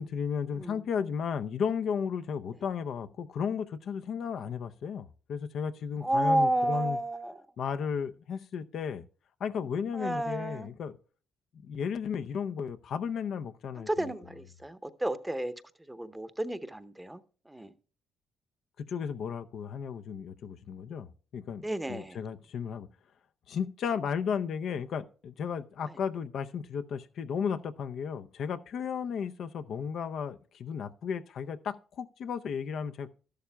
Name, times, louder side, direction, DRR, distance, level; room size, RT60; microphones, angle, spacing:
voice 1, 0.0-7.0 7.6-9.1 9.4-10.9 11.6-14.1 18.8-21.1 21.3-22.9 23.5-33.1, left 7 dB, 65° left, 0.6 m, -34 dB
voice 2, 6.0-7.4 9.9-10.7 13.8-15.5 15.9-17.2 17.5-17.7 21.6-22.2, right 1 dB, 10° right, 0.8 m, -31 dB
12.5 x 11.5 x 2.2 m
cardioid pair, 90°, 0 cm